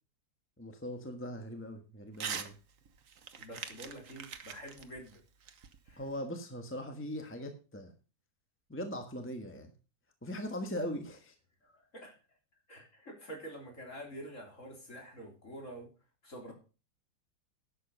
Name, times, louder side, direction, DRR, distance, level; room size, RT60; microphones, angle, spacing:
voice 1, 0.6-2.5 6.0-7.9 8.7-9.7 10.2-11.3, equal, 10° left, 5 dB, 1.3 m, -40 dB
Crumpling crinkling / Tearing, 2.1-2.5 2.9-6.2, right 7 dB, 55° right, 1.4 m, -43 dB
voice 2, 3.4-5.2 5.9-6.0 11.6-12.2 12.7-15.9 16.2-16.5, right 1 dB, 50° left, 0 dB, 4.2 m, -47 dB
11.5 x 7.7 x 5.4 m, 0.34 s
omnidirectional pair, 1.7 m